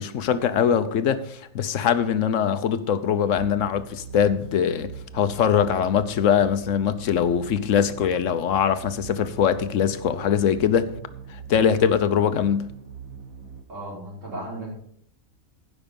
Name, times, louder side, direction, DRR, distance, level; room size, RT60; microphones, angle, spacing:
voice 1, 0.0-10.9 11.3-12.7, left 8 dB, 65° left, 1.1 m, -22 dB
sound 1, 3.3-13.6, right 6 dB, 80° right, 1.6 m, -41 dB
voice 2, 13.7-14.8, right 1 dB, 60° right, 5.3 m, -35 dB
15.5 x 5.9 x 5.3 m
omnidirectional pair, 1.5 m